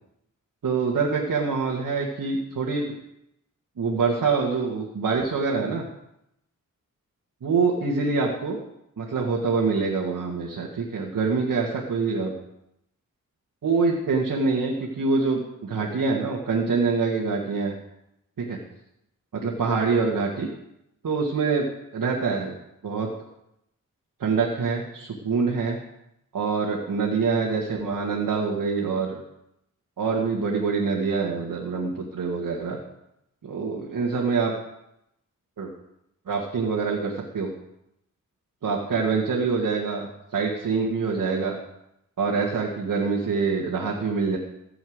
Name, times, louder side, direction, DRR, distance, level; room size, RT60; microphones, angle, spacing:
voice 1, 0.6-2.9 3.8-5.8 7.4-8.6 9.0-12.3 13.6-17.7 18.4-18.6 19.3-20.5 21.0-21.7 21.9-22.5 22.8-23.1 24.2-25.8 26.3-29.2 30.0-32.8 33.4-34.5 35.6-35.7 36.3-37.5 38.6-41.6 42.2-44.4, right 4 dB, 85° right, -2 dB, 2.0 m, -25 dB
15.0 x 7.2 x 8.0 m, 0.82 s
wide cardioid pair, 105°, 32 cm